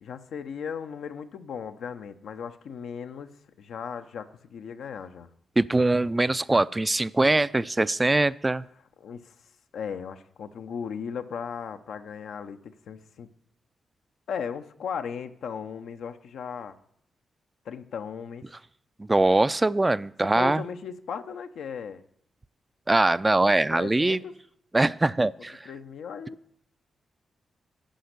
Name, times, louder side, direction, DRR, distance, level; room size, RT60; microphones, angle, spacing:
voice 1, 0.0-3.3 3.6-5.3 9.0-9.4 9.7-13.3 14.3-16.8 17.6-18.5 20.2-22.0 23.7-24.3 25.6-26.4, left 7 dB, 75° left, 8 dB, 0.6 m, -36 dB
voice 2, 5.6-8.6 19.0-20.6 22.9-24.2 24.7-25.7, right 2 dB, 25° right, 16 dB, 0.4 m, -22 dB
10.0 x 5.0 x 8.0 m, 0.71 s
supercardioid pair, 45°, 0 cm